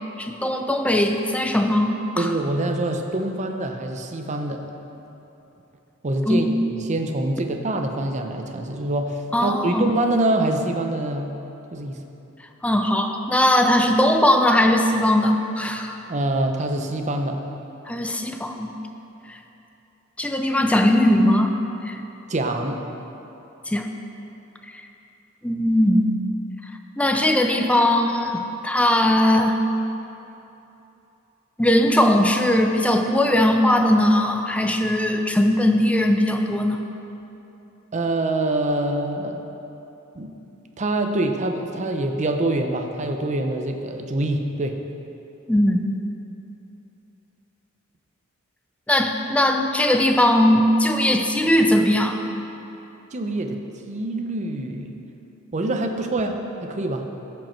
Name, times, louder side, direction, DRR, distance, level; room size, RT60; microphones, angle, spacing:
voice 1, 0.2-2.3 6.3-6.5 9.3-9.9 12.6-15.9 17.9-18.7 19.3-19.4 20.2-21.6 21.9-22.0 23.7-23.9 25.4-26.2 27.0-29.6 31.6-36.8 45.5-46.0 48.9-52.2, left 1 dB, 5° left, 4 dB, 0.5 m, -19 dB
voice 2, 2.2-4.6 6.0-11.3 11.7-12.0 16.1-17.4 22.3-22.8 37.9-39.4 40.1-40.4 40.8-44.8 53.1-53.6 53.8-54.9 55.5-57.1, right 2 dB, 35° right, 4 dB, 0.6 m, -25 dB
14.5 x 5.3 x 4.5 m, 3.0 s
head